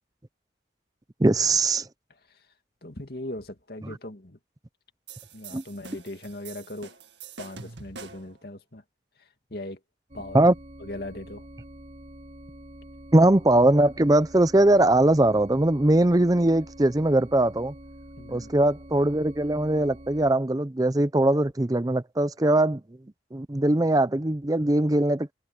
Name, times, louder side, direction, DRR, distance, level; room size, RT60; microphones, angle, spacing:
voice 1, 1.2-1.9 5.5-5.6 10.3-10.5 13.1-17.7 18.3-22.8 23.3-25.3, right 1 dB, 20° right, 0.6 m, -21 dB
voice 2, 2.8-4.4 5.3-7.0 7.4-8.8 9.2-9.8 10.1-10.4 10.8-11.5 18.2-18.5, left 1 dB, 55° left, 2.5 m, -39 dB
sound 1, 5.1-8.4, right 5 dB, 75° right, 2.0 m, -45 dB
sound 2, 10.1-20.3, right 1 dB, 40° right, 3.0 m, -46 dB
head